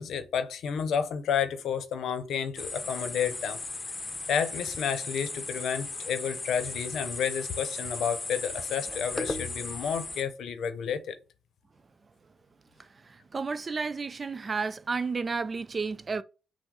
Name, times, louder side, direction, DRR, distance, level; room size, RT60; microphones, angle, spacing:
voice 1, 0.0-3.6 4.3-11.2, left 7 dB, 75° left, 0.7 m, -31 dB
sound 1, 2.6-10.2, left 3 dB, 30° left, 0.7 m, -36 dB
voice 2, 13.1-16.2, right 4 dB, 40° right, 0.4 m, -32 dB
5.9 x 2.1 x 3.7 m
supercardioid pair, 60°, 0 cm